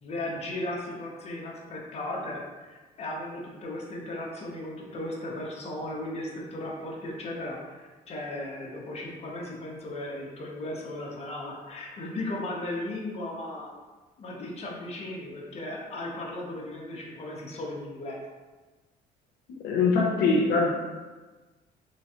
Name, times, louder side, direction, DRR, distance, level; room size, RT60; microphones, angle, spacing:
voice 1, 0.0-13.7 14.2-18.2, left 1 dB, 40° left, -2 dB, 0.8 m, -36 dB
voice 2, 19.6-20.7, left 4 dB, 70° left, -2 dB, 0.7 m, -22 dB
3.3 x 3.0 x 2.8 m, 1.3 s
cardioid pair, 110°, 17 cm